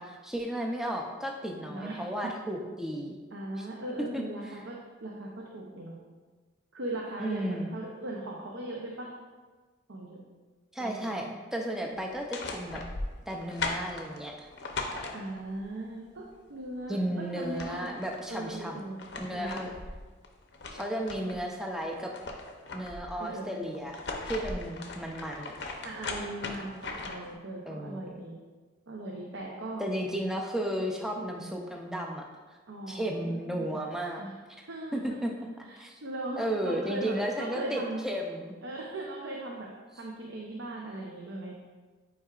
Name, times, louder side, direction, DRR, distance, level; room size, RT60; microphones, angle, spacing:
voice 1, 0.0-3.2 3.6-3.7 4.1-4.6 7.2-7.7 10.7-12.8 13.3-14.5 16.9-18.8 19.2-19.7 20.7-22.1 22.7-24.0 24.2-25.5 27.7-28.3 29.8-32.3 32.9-34.2 34.6-34.7 34.9-36.0 36.4-38.5, right 1 dB, ahead, 0 dB, 0.4 m, -34 dB
voice 2, 1.7-2.3 3.3-4.8 5.0-5.9 6.7-9.1 9.9-10.2 10.8-11.1 15.1-17.9 18.3-19.0 19.3-19.8 21.0-21.4 23.2-23.8 25.8-28.4 28.9-29.8 31.2-31.5 32.7-33.7 34.2-34.3 34.7-35.2 35.6-38.0 38.6-39.7 40.0-41.5, right 1 dB, 65° right, -1 dB, 0.7 m, -39 dB
sound 1, 12.1-15.6 17.1-17.2 17.4-18.2 18.8-21.4 21.8-23.1 23.7-27.4, left 3 dB, 55° left, 0.6 m, -38 dB
8.5 x 4.6 x 2.4 m, 1.4 s
head